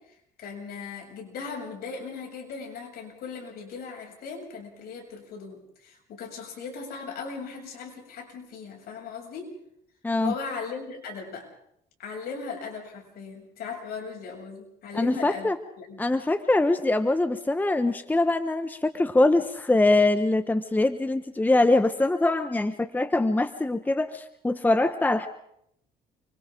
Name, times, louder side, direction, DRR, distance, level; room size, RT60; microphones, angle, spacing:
voice 1, 0.4-9.5 10.2-11.5 12.0-16.1, left 5 dB, 65° left, 1 dB, 7.5 m, -38 dB
voice 2, 14.9-15.6 16.0-25.3, left 2 dB, 10° left, 10 dB, 1.0 m, -23 dB
29.5 x 25.0 x 3.8 m, 0.72 s
cardioid pair, 110°, 17 cm